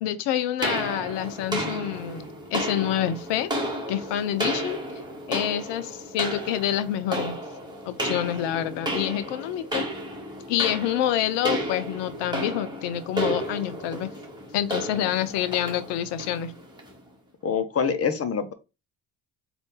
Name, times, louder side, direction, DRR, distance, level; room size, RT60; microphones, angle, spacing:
voice 1, 0.0-2.2 2.5-3.5 3.9-4.8 5.3-7.4 7.9-9.8 10.5-14.1 14.5-16.5, left 11 dB, 70° left, 0.7 m, -27 dB
sound 1, 0.6-17.0, equal, 10° right, 1.7 m, -32 dB
voice 2, 17.4-18.5, left 6 dB, 30° left, 0.9 m, -25 dB
3.9 x 2.6 x 3.7 m
hypercardioid pair, 65°, 44 cm